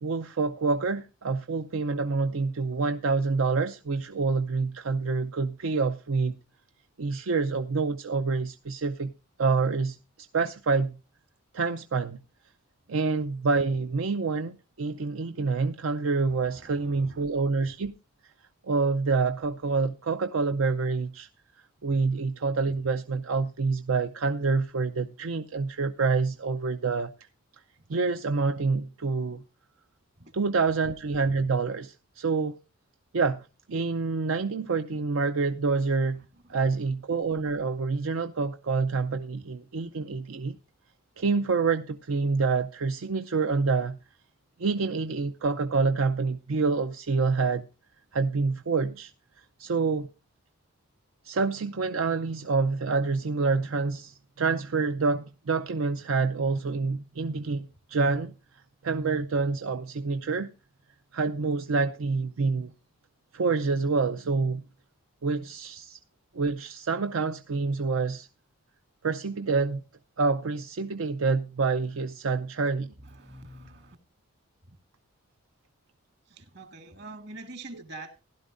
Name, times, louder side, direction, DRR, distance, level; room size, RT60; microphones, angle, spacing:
voice 1, 0.0-6.4 7.0-9.1 9.4-10.0 10.3-11.0 11.5-12.2 12.9-17.9 18.6-21.3 21.8-27.1 27.9-29.4 30.3-32.6 33.1-36.2 36.5-40.6 41.2-44.0 44.6-47.7 48.1-49.1 49.6-50.1 51.2-58.3 58.8-60.5 61.1-62.7 63.3-64.6 65.2-66.0 66.3-68.3 69.0-69.8 70.2-72.9 77.7-77.8, right 4 dB, 80° right, 0.6 m, -27 dB
voice 2, 16.3-17.2 30.2-30.3 73.0-74.0 76.3-78.2, right 2 dB, 55° right, 1.8 m, -45 dB
16.0 x 11.5 x 2.5 m
head